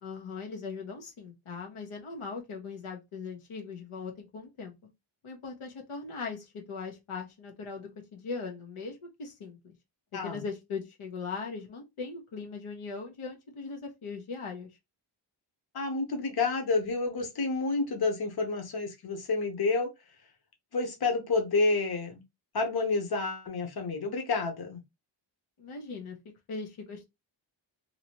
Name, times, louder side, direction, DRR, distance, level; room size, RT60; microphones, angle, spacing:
voice 1, 0.0-4.7 5.2-9.7 10.1-14.8 25.6-26.2 26.5-27.1, left 4 dB, 90° left, 1.0 m, -39 dB
voice 2, 10.1-10.4 15.7-19.9 20.7-22.2 22.5-24.8, left 3 dB, 50° left, 1.0 m, -29 dB
2.9 x 2.7 x 2.9 m
wide cardioid pair, 95°, 48 cm